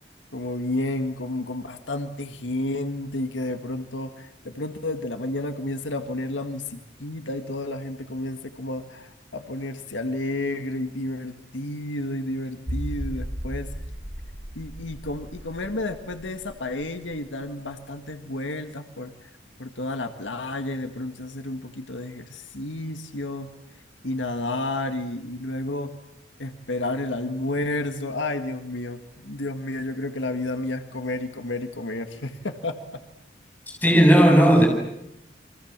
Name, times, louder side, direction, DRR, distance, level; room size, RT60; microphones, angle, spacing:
voice 1, 0.3-13.7 14.5-19.3 19.6-23.5 24.0-25.9 26.4-32.8 33.9-34.1, left 2 dB, 80° left, 7 dB, 1.8 m, -31 dB
sound 1, 12.7-18.1 18.4-18.5 19.0-19.1, equal, 55° right, 4.9 m, -36 dB
voice 2, 33.8-34.7, equal, 10° left, 1 dB, 7.7 m, -15 dB
30.0 x 24.5 x 7.4 m, 0.83 s
head